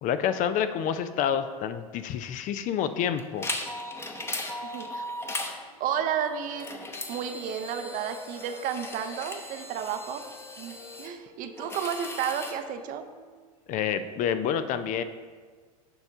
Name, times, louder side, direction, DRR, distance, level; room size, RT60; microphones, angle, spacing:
voice 1, 0.0-3.5 13.7-15.0, left 8 dB, 45° left, 11 dB, 0.4 m, -28 dB
sound 1, 3.2-5.5 6.0-11.1 11.6-12.5, left 1 dB, 15° left, 0.8 m, -37 dB
voice 2, 4.6-5.1 5.8-6.7 7.1-10.2 10.6-13.0, right 8 dB, 50° right, 8 dB, 0.6 m, -32 dB
Wind instrument woodwind instrument, 5.2-9.2 9.5-14.0, left 3 dB, 75° left, 1.9 m, -52 dB
6.9 x 5.4 x 3.6 m, 1.5 s
hypercardioid pair, 85°, 19 cm